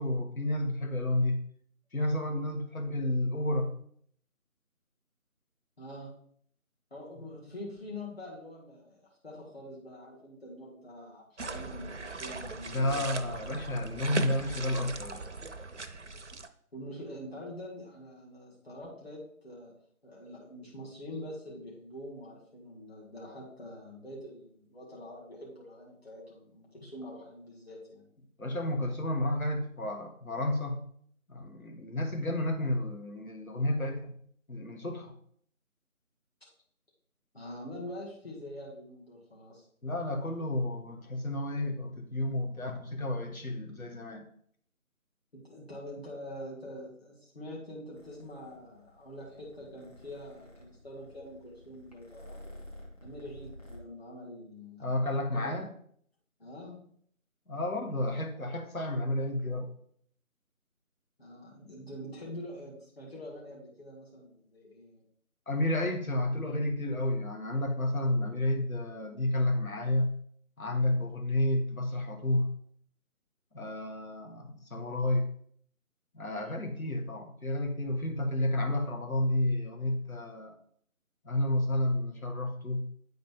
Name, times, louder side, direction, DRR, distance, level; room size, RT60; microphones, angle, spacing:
voice 1, 0.0-1.4 1.9-3.7 12.7-15.2 28.4-30.8 31.3-34.1 34.5-35.1 39.8-44.2 54.8-55.7 57.5-59.7 65.5-70.1 70.6-72.5 73.5-75.3 76.1-80.5 81.2-82.9, left 1 dB, 75° left, 3 dB, 1.6 m, -31 dB
voice 2, 5.8-6.1 6.9-13.6 16.7-19.7 20.0-28.1 37.3-39.7 45.3-52.5 53.0-54.9 55.3-55.6 56.4-56.9 61.2-65.0, left 1 dB, 45° left, -5 dB, 2.0 m, -45 dB
sound 1, 11.4-16.5, right 3 dB, 55° right, 0.6 m, -39 dB
Purr, 47.9-53.8, left 1 dB, 25° left, 1.1 m, -51 dB
9.4 x 3.9 x 3.7 m, 0.63 s
figure-of-eight pair, 165°, 42 cm